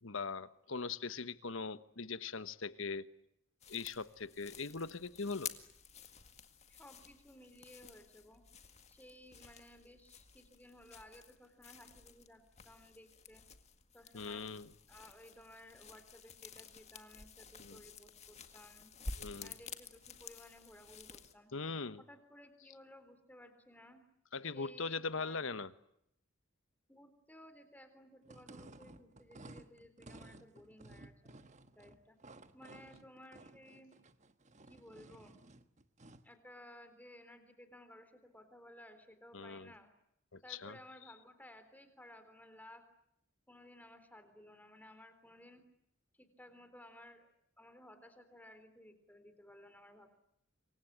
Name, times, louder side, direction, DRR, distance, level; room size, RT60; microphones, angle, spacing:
voice 1, 0.0-3.1 3.7-5.5 14.1-14.7 17.6-17.8 19.2-19.5 21.5-22.0 24.3-25.7 39.3-39.7 40.3-40.8, left 4 dB, 70° left, 13 dB, 1.2 m, -41 dB
sound 1, 3.6-21.3, left 5 dB, 30° left, 2.0 m, -52 dB
voice 2, 6.7-8.4 8.9-13.4 13.9-14.5 14.9-18.9 19.4-21.5 22.0-24.0 24.4-25.5 26.9-31.3 31.7-32.2 32.5-33.9 34.7-35.4 36.2-39.9 40.4-42.9 43.5-45.7 46.1-47.3 47.6-50.1, left 1 dB, 10° left, 10 dB, 3.7 m, -57 dB
sound 2, 28.2-36.3, right 2 dB, 35° right, 1.3 m, -56 dB
27.0 x 24.0 x 8.8 m, 0.76 s
head